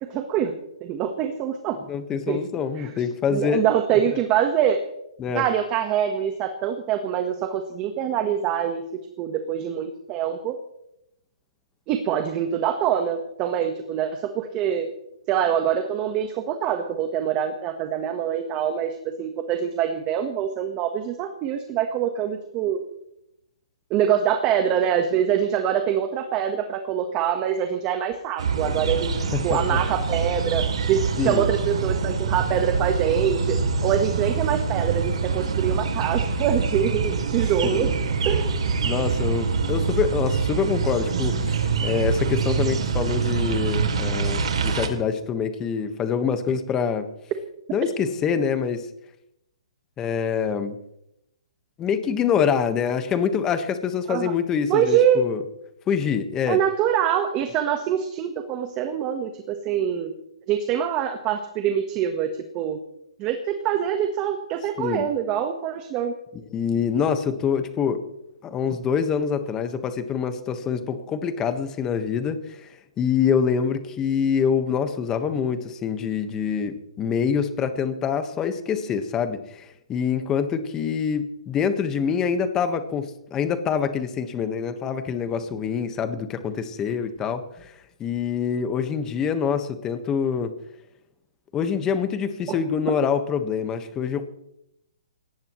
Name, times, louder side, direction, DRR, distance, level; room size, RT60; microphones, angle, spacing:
voice 1, 0.0-0.5 0.8-1.8 2.3-2.4 2.7-2.9 3.3-4.8 5.3-8.8 9.2-10.5 11.9-14.9 15.3-22.8 23.9-37.9 38.2-38.8 54.1-54.3 54.7-55.2 56.5-60.1 60.5-62.8 63.2-66.1, right 9 dB, 25° right, 6 dB, 1.3 m, -24 dB
voice 2, 1.9-3.6 5.2-5.5 29.3-29.8 31.2-31.4 37.6-37.9 38.8-47.1 47.7-48.9 50.0-50.8 51.8-55.4 55.9-56.6 64.8-65.1 66.5-68.0 68.4-72.7 73.0-87.7 88.0-90.5 91.5-94.3, left 7 dB, 15° left, 9 dB, 1.4 m, -25 dB
sound 1, 28.4-44.9, right 5 dB, 70° right, 2.9 m, -25 dB
23.0 x 18.5 x 3.1 m, 0.82 s
hypercardioid pair, 155°, 3 cm